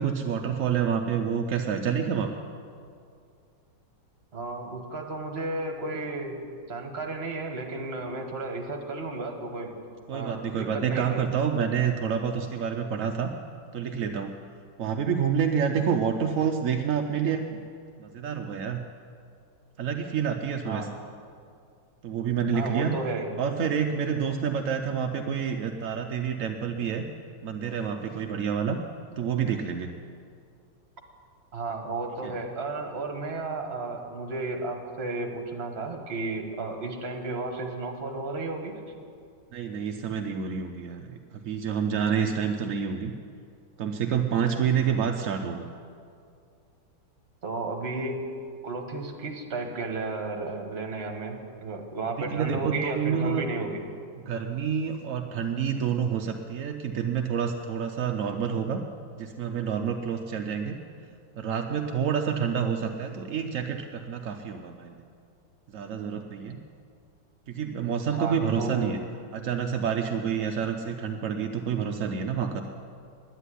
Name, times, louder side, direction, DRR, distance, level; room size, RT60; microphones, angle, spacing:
voice 1, 0.0-2.4 10.1-13.3 13.7-14.3 14.8-17.6 17.9-18.8 19.8-20.9 22.0-23.0 23.4-27.0 27.4-28.8 29.2-29.9 32.2-32.3 39.5-43.1 43.8-45.8 52.2-53.5 54.3-58.8 59.2-60.8 61.4-65.0 65.7-66.6 67.5-69.0 69.3-72.6, right 7 dB, 65° right, 4 dB, 0.8 m, -28 dB
voice 2, 4.3-6.4 6.7-9.7 10.1-11.3 20.6-20.9 22.5-23.3 31.5-38.7 47.4-48.2 48.6-53.8 68.1-69.1, right 3 dB, 35° right, 3 dB, 1.4 m, -33 dB
9.9 x 9.8 x 9.9 m, 2.3 s
omnidirectional pair, 2.1 m